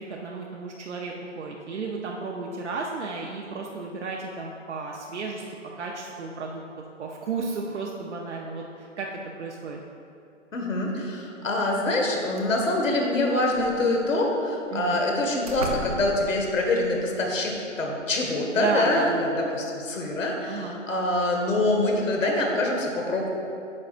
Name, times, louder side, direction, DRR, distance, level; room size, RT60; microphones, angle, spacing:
voice 1, 0.0-5.4 5.8-6.6 7.0-9.8 14.7-15.0 18.5-19.5 20.5-20.8, right 4 dB, 60° right, -1 dB, 0.7 m, -33 dB
voice 2, 10.5-23.3, left 2 dB, 80° left, 0 dB, 1.6 m, -25 dB
sound 1, 12.0-12.1 12.4-12.8 13.4-14.2 15.0-15.1 15.4-17.0, right 1 dB, 30° right, 0.5 m, -36 dB
9.5 x 6.4 x 2.5 m, 2.7 s
hypercardioid pair, 170°, 38 cm